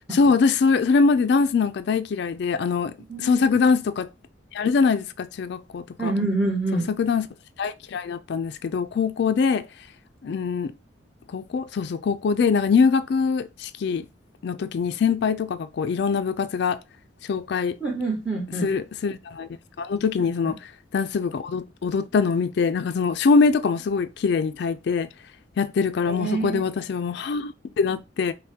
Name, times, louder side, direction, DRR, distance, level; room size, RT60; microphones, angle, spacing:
voice 1, 0.1-2.9 3.2-4.1 4.5-6.1 7.0-7.3 7.6-9.6 10.2-10.7 11.3-14.0 14.4-16.8 17.3-17.7 18.6-19.5 19.8-20.6 20.9-25.1 25.6-28.3, left 5 dB, 60° left, 0.3 m, -23 dB
voice 2, 3.1-3.4 6.0-6.9 17.8-18.7 20.4-20.6 26.0-26.6, right 2 dB, 5° right, 1.1 m, -27 dB
5.5 x 2.2 x 2.8 m
head